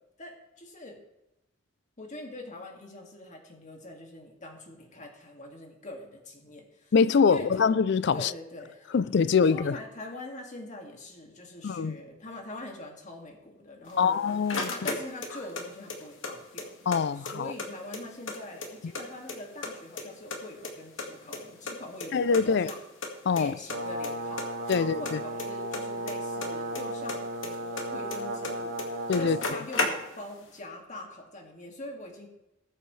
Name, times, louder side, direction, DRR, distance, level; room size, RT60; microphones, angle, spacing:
voice 1, 0.2-1.0 2.0-6.9 7.2-7.5 8.1-9.0 9.4-14.2 14.7-16.7 17.2-22.8 23.4-24.5 24.7-32.3, left 1 dB, 40° left, 2.2 m, -43 dB
voice 2, 6.9-8.3 8.9-9.8 11.6-12.0 14.0-14.7 16.9-17.5 22.1-22.7 23.3-23.5 24.7-25.2 29.1-29.4, left 5 dB, 60° left, 0.4 m, -24 dB
sound 1, 13.9-15.6 15.9-17.0 17.3-17.4 17.6-19.0 19.3-20.0 20.3-21.7 22.0-22.1 22.3-22.4 22.7-22.8 23.0-23.4 23.7-24.1 24.4-26.8 27.1-28.5 28.8-28.9 29.1-30.3, left 3 dB, 85° left, 1.9 m, -34 dB
Brass instrument, 23.7-29.5, right 1 dB, 70° right, 1.7 m, -35 dB
19.5 x 7.9 x 3.2 m
head